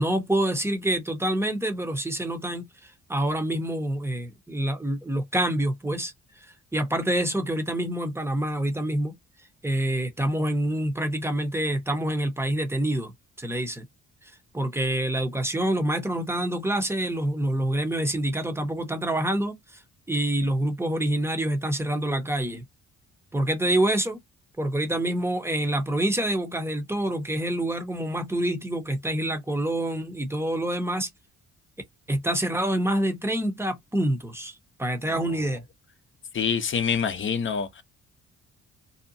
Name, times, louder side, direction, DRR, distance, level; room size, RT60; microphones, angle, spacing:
voice 1, 0.0-2.7 3.1-6.1 6.7-9.1 9.6-13.1 13.4-13.8 14.5-19.8 20.1-22.6 23.3-24.2 24.6-31.1 32.1-34.5 34.8-35.6, right 1 dB, 10° right, 0.8 m, -26 dB
voice 2, 36.3-37.8, left 6 dB, 40° left, 0.6 m, -26 dB
2.7 x 2.1 x 2.6 m
cardioid pair, 90°, 30 cm